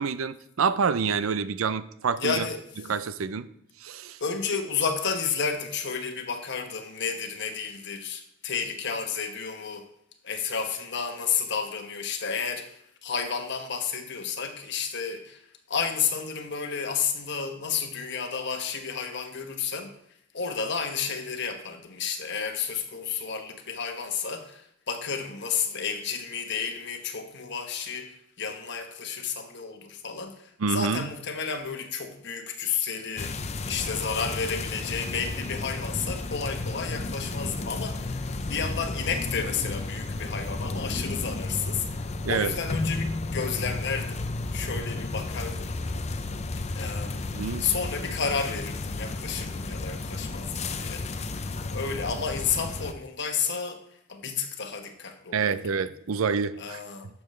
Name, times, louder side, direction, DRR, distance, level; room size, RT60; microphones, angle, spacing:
voice 1, 0.0-2.5 2.9-3.5 3.8-4.2 30.6-31.1 42.2-42.5 47.3-47.7 55.3-56.8, right 5 dB, 80° right, 0.5 m, -27 dB
voice 2, 2.2-2.6 4.2-9.8 10.2-15.4 15.7-19.9 20.3-33.3 33.7-44.2 44.5-45.8 46.7-47.2 47.6-51.1 51.7-53.8 54.1-55.4 55.7-55.8 56.6-57.1, left 6 dB, 55° left, 1.2 m, -31 dB
sound 1, 33.2-52.9, left 2 dB, 30° left, 0.5 m, -33 dB
11.5 x 7.1 x 3.2 m
head